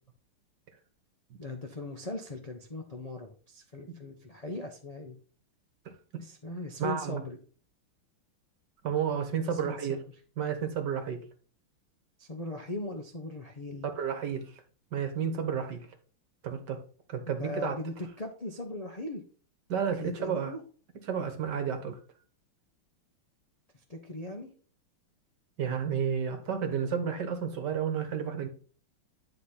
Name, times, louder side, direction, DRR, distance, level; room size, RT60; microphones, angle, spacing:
voice 1, 1.4-5.2 6.2-7.4 9.4-10.0 12.2-13.9 17.3-19.2 20.0-20.6 23.7-24.5, left 2 dB, 55° left, 0.4 m, -39 dB
voice 2, 6.8-7.2 8.8-10.0 10.4-11.2 13.8-14.5 14.9-15.9 16.4-16.8 17.1-17.8 19.7-20.5 21.1-22.0 25.6-28.5, right 7 dB, 55° right, 1.7 m, -31 dB
9.8 x 4.1 x 4.2 m
omnidirectional pair, 2.3 m